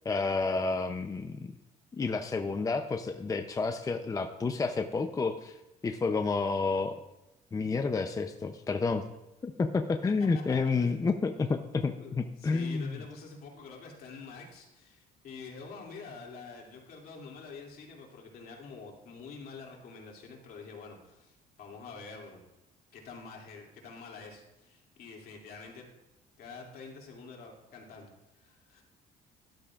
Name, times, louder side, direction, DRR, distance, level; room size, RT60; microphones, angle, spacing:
voice 1, 0.0-1.5 2.0-7.0 7.5-9.0 9.4-13.0, left 4 dB, 20° left, 6 dB, 0.6 m, -30 dB
voice 2, 10.0-11.2 12.0-22.4 22.9-25.9 26.4-28.8, left 4 dB, 65° left, 0 dB, 2.6 m, -47 dB
12.0 x 11.5 x 2.4 m, 0.94 s
cardioid pair, 110°, 17 cm